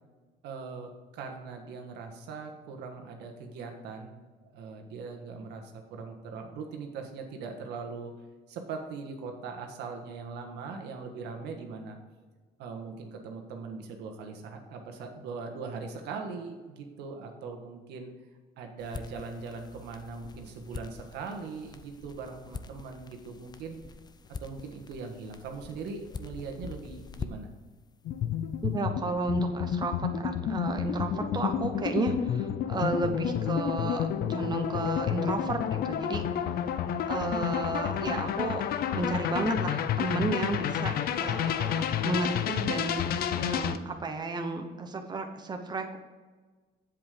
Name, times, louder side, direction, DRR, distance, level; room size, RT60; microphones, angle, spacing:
voice 1, 0.4-8.1 8.5-12.0 12.6-18.1 18.6-23.8 24.4-27.5, right 4 dB, 85° right, 4 dB, 1.5 m, -40 dB
sound 1, 18.8-27.6, left 4 dB, 25° left, 0.6 m, -45 dB
sound 2, 28.0-43.8, left 9 dB, 65° left, 0.7 m, -30 dB
voice 2, 28.6-36.4 37.1-46.0, right 3 dB, 25° right, 5 dB, 1.0 m, -33 dB
7.7 x 7.7 x 5.1 m, 1.4 s
cardioid pair, 110°, 17 cm